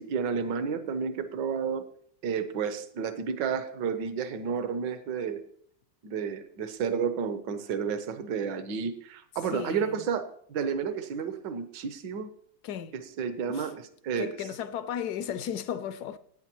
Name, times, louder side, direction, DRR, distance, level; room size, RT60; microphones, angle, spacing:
voice 1, 0.0-1.8 2.2-5.4 6.0-12.3 12.9-14.4, right 6 dB, 75° right, 1.5 m, -31 dB
voice 2, 9.5-10.1 12.6-12.9 13.5-13.7 14.2-16.2, left 9 dB, 70° left, 1.0 m, -35 dB
17.0 x 8.9 x 3.0 m
omnidirectional pair, 2.0 m